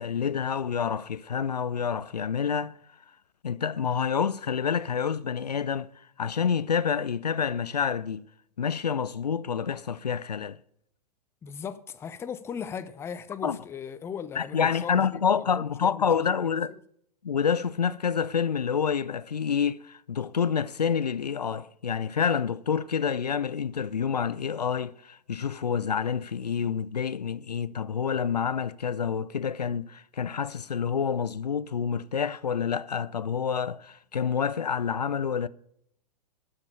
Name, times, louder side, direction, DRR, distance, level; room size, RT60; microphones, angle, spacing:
voice 1, 0.0-2.7 3.4-5.9 6.2-8.2 8.6-10.6 13.4-13.6 14.3-16.7 17.2-35.5, left 7 dB, 80° left, 0.4 m, -28 dB
voice 2, 11.4-16.4, left 7 dB, 10° left, 0.6 m, -38 dB
12.5 x 5.3 x 6.7 m
figure-of-eight pair, 105°, 21 cm